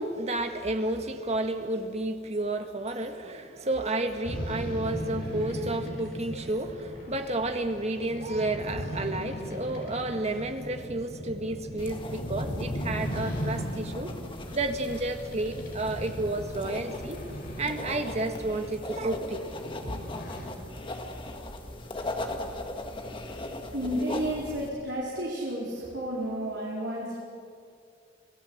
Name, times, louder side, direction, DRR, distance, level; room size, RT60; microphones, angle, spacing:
voice 1, 0.0-14.1 14.5-17.2 17.6-19.4, right 2 dB, 35° right, 6 dB, 1.7 m, -31 dB
sound 1, 4.2-20.5, equal, 50° left, 4.8 m, -38 dB
sound 2, 11.8-24.7, left 1 dB, 30° left, 1.9 m, -39 dB
voice 2, 23.7-27.2, equal, 70° right, -5 dB, 4.6 m, -31 dB
26.0 x 18.5 x 8.0 m, 2.4 s
head